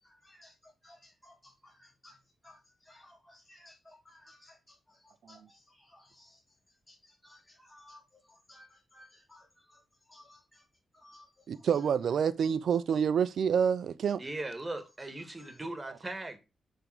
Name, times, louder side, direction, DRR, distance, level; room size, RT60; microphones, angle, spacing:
voice 1, 0.0-2.2 2.4-6.4 6.9-9.8 10.1-10.6 10.9-11.9 15.0-15.6, left 1 dB, 10° left, 1.7 m, -59 dB
voice 2, 11.5-14.2, right 7 dB, 70° right, 0.6 m, -28 dB
voice 3, 14.2-16.4, right 2 dB, 20° right, 1.8 m, -39 dB
7.0 x 3.7 x 6.1 m
cardioid pair, 70°, 0 cm